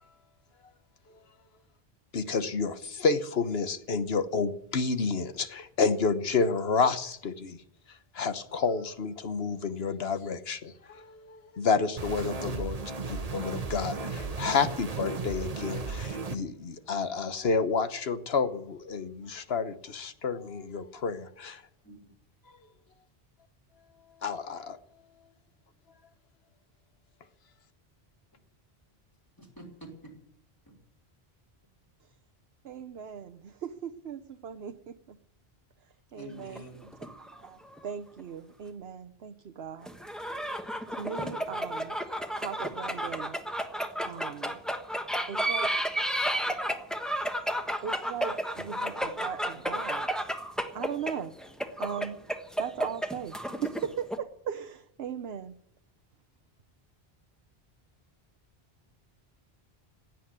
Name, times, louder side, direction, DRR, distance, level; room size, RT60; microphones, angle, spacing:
voice 1, 2.1-7.6 8.1-21.6 24.2-24.8, left 4 dB, 75° left, 11 dB, 1.3 m, -30 dB
sound 1, 12.0-16.4, right 4 dB, 40° right, 1.0 m, -35 dB
voice 2, 29.4-29.9 30.7-30.8 36.1-36.9, right 1 dB, 20° left, -1 dB, 4.7 m, -47 dB
voice 3, 32.6-35.2 36.1-36.6 37.0-39.9 40.9-41.9 42.4-43.4 44.0-44.6 45.3-45.7 47.8-50.1 50.7-51.3 51.8-52.2 52.6-55.5, right 8 dB, 75° right, 7 dB, 1.0 m, -38 dB
sound 2, 36.4-37.9 38.2-38.3 39.9-54.2, equal, ahead, 1.3 m, -32 dB
16.5 x 9.2 x 9.6 m, 0.73 s
omnidirectional pair, 1.1 m